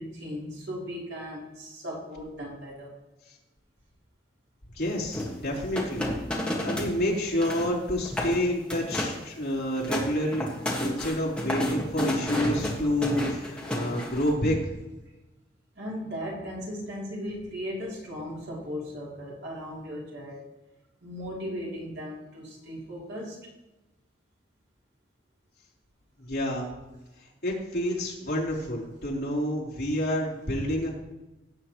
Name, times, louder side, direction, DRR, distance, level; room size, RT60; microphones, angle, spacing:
voice 1, 0.0-2.9 9.3-9.4 15.8-20.5 21.0-23.5, equal, 75° right, -4 dB, 3.2 m, -37 dB
voice 2, 4.7-6.1 6.4-10.5 10.8-14.6 26.2-26.7 27.2-30.9, equal, 60° left, -4 dB, 3.6 m, -29 dB
sound 1, 5.1-7.0 7.2-7.7 8.1-8.4 8.7-9.2 9.6-14.3, left 1 dB, 5° left, 1.7 m, -31 dB
17.5 x 8.1 x 3.1 m, 1.0 s
head